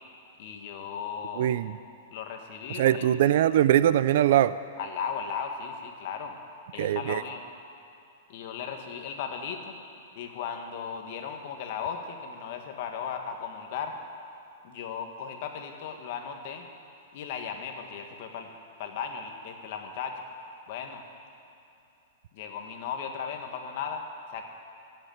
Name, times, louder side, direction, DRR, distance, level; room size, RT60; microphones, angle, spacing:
voice 1, 0.4-1.5 2.1-3.1 4.8-6.4 6.7-7.4 8.3-9.7 10.2-14.0 14.6-16.7 17.1-18.5 18.8-20.1 20.7-21.0 22.3-24.0 24.3-24.4, left 7 dB, 50° left, 4 dB, 1.7 m, -36 dB
voice 2, 1.3-1.8 2.7-4.6 6.8-7.2, right 12 dB, 60° right, 16 dB, 0.4 m, -22 dB
15.5 x 8.2 x 9.3 m, 2.7 s
supercardioid pair, 160°, 0 cm